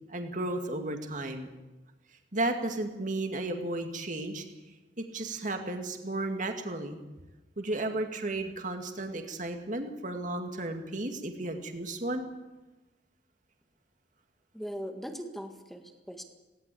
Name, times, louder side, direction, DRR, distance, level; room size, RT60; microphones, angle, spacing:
voice 1, 0.1-1.5 2.3-4.4 5.0-7.0 7.6-12.2, right 2 dB, 45° right, 5 dB, 2.3 m, -33 dB
voice 2, 14.5-16.2, equal, ahead, 5 dB, 1.8 m, -40 dB
18.0 x 17.5 x 8.6 m, 1.1 s
head